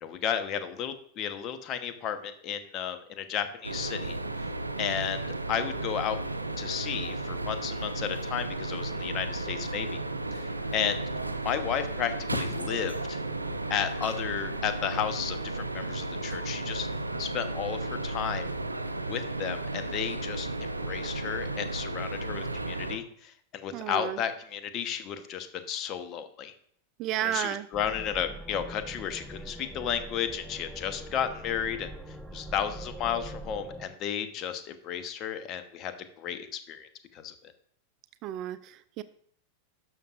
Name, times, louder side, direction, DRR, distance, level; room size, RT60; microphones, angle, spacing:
voice 1, 0.0-4.2 4.8-6.2 6.6-10.0 10.3-11.0 11.4-13.2 13.7-16.9 17.2-18.5 19.1-26.5 27.2-35.9 36.2-37.3, left 8 dB, 40° left, 9 dB, 1.0 m, -33 dB
sound 1, 3.6-23.0, right 2 dB, 90° right, 0.6 m, -34 dB
voice 2, 23.7-24.2 27.0-27.7 38.2-39.0, right 12 dB, 40° right, 14 dB, 0.4 m, -32 dB
sound 2, 27.7-33.9, right 1 dB, ahead, 1.2 m, -43 dB
12.0 x 6.4 x 2.5 m, 0.63 s
figure-of-eight pair, 90°, 0 cm